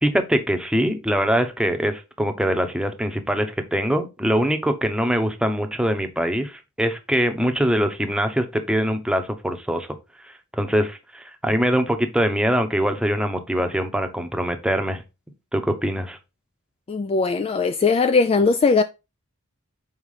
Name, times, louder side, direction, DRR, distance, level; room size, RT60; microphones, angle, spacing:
voice 1, 0.0-9.9 10.3-15.0 15.5-16.2, equal, 5° right, 0.9 m, -23 dB
voice 2, 16.9-18.8, left 4 dB, 25° left, 0.3 m, -19 dB
5.6 x 4.7 x 4.9 m
head